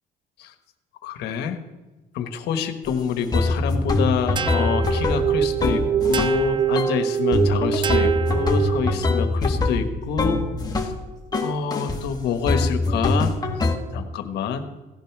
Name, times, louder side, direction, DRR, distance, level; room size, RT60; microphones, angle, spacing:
voice 1, 1.0-1.6 2.1-10.4 10.8-10.9 11.4-13.4 13.9-14.7, left 7 dB, 80° left, 8 dB, 1.5 m, -26 dB
sound 1, 2.8-2.9 3.3-6.4 6.7-7.0 7.3-11.0 11.3-12.0 12.5-13.8, left 2 dB, 25° left, 1.9 m, -23 dB
sound 2, 4.4-9.1, right 9 dB, 25° right, 0.4 m, -24 dB
17.0 x 11.0 x 6.1 m, 1.2 s
cardioid pair, 110°, 17 cm